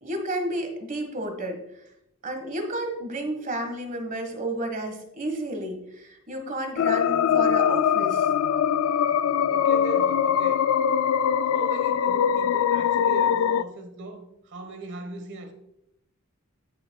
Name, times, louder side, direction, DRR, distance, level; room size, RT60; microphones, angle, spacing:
voice 1, 0.0-1.6 2.2-8.3, right 1 dB, 40° right, 1.4 m, -31 dB
sound 1, 6.8-13.6, left 8 dB, 85° left, 0.3 m, -22 dB
voice 2, 9.5-10.7 11.4-15.5, right 3 dB, 60° right, 1.2 m, -39 dB
14.0 x 5.9 x 2.3 m
head